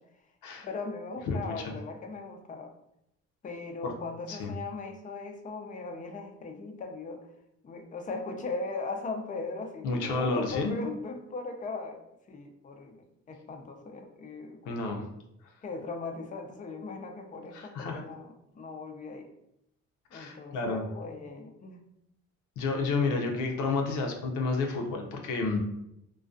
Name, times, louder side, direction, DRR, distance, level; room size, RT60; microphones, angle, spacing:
voice 1, 0.6-2.7 3.4-7.3 7.6-12.0 12.3-15.1 15.6-19.3 20.1-21.8, left 3 dB, 25° left, 4 dB, 0.4 m, -39 dB
voice 2, 1.3-1.7 3.8-3.9 4.3-4.5 9.8-10.7 14.7-15.0 17.5-18.0 20.1-20.9 22.6-25.6, left 3 dB, 90° left, 2 dB, 0.5 m, -30 dB
2.3 x 2.2 x 2.5 m, 0.80 s
cardioid pair, 90°, 30 cm